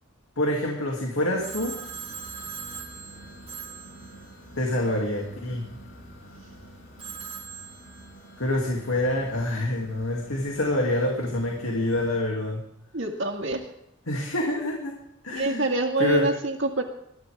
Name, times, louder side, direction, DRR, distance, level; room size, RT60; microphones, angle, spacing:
voice 1, 0.4-1.8 4.6-5.7 8.4-12.7 14.1-15.0 15.2-15.7 16.0-16.3, left 1 dB, 85° left, 0 dB, 2.7 m, -26 dB
sound 1, 1.3-12.2, right 1 dB, 60° left, 4.8 m, -48 dB
Telephone, 1.4-4.7 7.0-8.5, right 7 dB, 30° right, 2.2 m, -41 dB
voice 2, 12.9-13.6 15.3-16.8, right 2 dB, 60° right, 1 dB, 2.0 m, -26 dB
21.5 x 14.0 x 3.6 m, 0.79 s
head